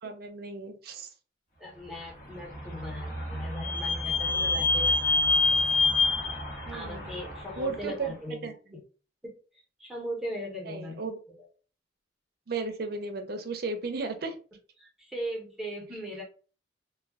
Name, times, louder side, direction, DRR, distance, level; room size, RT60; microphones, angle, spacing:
voice 1, 0.0-1.1 6.7-7.1 7.6-8.5 10.7-11.2 12.5-14.4, right 4 dB, 55° right, 6 dB, 0.5 m, -35 dB
voice 2, 1.6-5.1 6.7-8.8 9.2-9.4 9.8-11.0 11.4-11.5 14.8-16.2, equal, ahead, -2 dB, 0.7 m, -39 dB
Vehicle / Squeak, 2.2-7.8, left 3 dB, 50° left, 0.9 m, -27 dB
2.2 x 2.2 x 3.4 m, 0.37 s
head